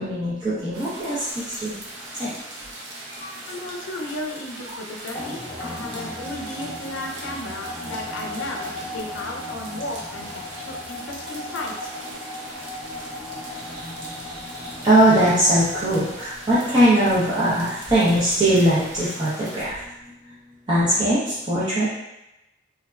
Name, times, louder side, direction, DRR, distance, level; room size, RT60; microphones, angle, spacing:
voice 1, 0.0-1.7 2.1-2.3 3.1-3.3 5.7-5.8 14.8-19.8 20.7-21.9, right 1 dB, 25° right, -12 dB, 0.6 m, -20 dB
sound 1, 0.7-19.7, right 1 dB, 75° right, 0.6 m, -40 dB
voice 2, 3.5-11.9, left 1 dB, 85° left, 0 dB, 0.5 m, -34 dB
sound 2, 5.1-16.5, left 2 dB, 25° left, 0.9 m, -36 dB
3.4 x 2.0 x 2.3 m, 0.95 s
head